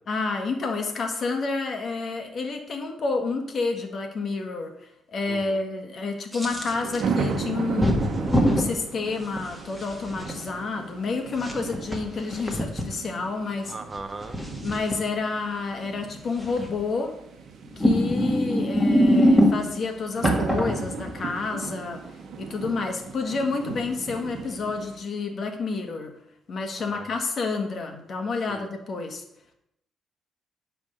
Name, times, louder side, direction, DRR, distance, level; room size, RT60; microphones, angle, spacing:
voice 1, 0.1-8.0 8.4-13.7 14.6-17.1 17.8-22.1 22.4-26.1 26.5-29.2, left 4 dB, 50° left, 4 dB, 1.5 m, -29 dB
voice 2, 5.3-5.6 13.6-14.4 26.9-27.1 28.5-28.7, right 3 dB, 30° right, 9 dB, 0.7 m, -38 dB
sound 1, 6.3-7.0 7.8-8.7 9.4-10.3 11.3-12.9 14.0-14.9 16.4-16.8 17.7-19.8 20.2-21.4, equal, 5° left, 1.7 m, -23 dB
sound 2, 6.5-25.0, right 5 dB, 65° right, 1.1 m, -35 dB
10.0 x 3.5 x 6.6 m, 0.80 s
cardioid pair, 90°, 0 cm